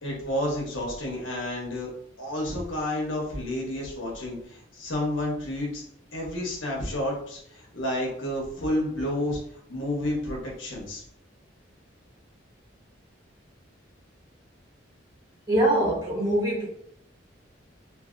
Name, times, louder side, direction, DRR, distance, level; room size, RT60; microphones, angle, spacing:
voice 1, 0.0-1.9 2.2-5.8 6.1-9.4 9.7-11.0, left 1 dB, 90° left, -2 dB, 1.0 m, -30 dB
voice 2, 15.5-16.6, right 1 dB, 20° right, -5 dB, 1.0 m, -23 dB
2.7 x 2.7 x 2.5 m, 0.69 s
head